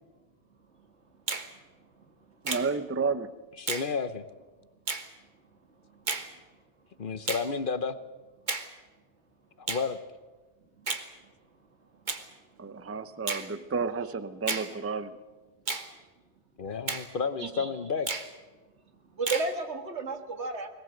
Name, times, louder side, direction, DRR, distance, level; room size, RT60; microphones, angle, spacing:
Finger snapping, 1.3-1.5 2.5-2.7 3.7-3.9 4.9-5.1 6.1-6.3 7.3-7.5 8.5-8.7 9.7-9.9 10.9-11.1 12.1-12.3 13.3-13.5 14.5-14.7 15.7-15.9 16.9-17.1 18.1-18.3 19.3-19.5, right 4 dB, 45° right, 1.5 m, -32 dB
voice 1, 2.4-3.4 12.6-15.2, right 4 dB, 15° right, 13 dB, 0.6 m, -31 dB
voice 2, 3.6-4.2 7.0-8.0 9.6-10.0 16.6-18.1, left 5 dB, 50° left, 13 dB, 1.0 m, -31 dB
voice 3, 17.4-17.7 19.1-20.7, right 3 dB, 80° right, 6 dB, 2.2 m, -33 dB
21.5 x 19.5 x 7.9 m, 1.3 s
omnidirectional pair, 1.1 m